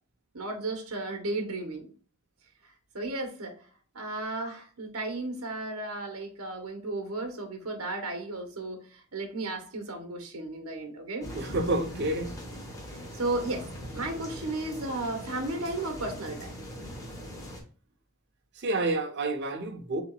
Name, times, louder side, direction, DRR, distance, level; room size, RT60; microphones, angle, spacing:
voice 1, 0.3-1.9 2.6-3.7 3.9-11.3 12.9-13.7 13.9-16.5, right 2 dB, 75° right, 1.1 m, -34 dB
sound 1, 11.2-17.6, equal, 15° left, 1.3 m, -41 dB
voice 2, 11.3-12.3 18.6-20.0, right 2 dB, 50° right, 0.8 m, -29 dB
7.1 x 2.9 x 2.3 m
head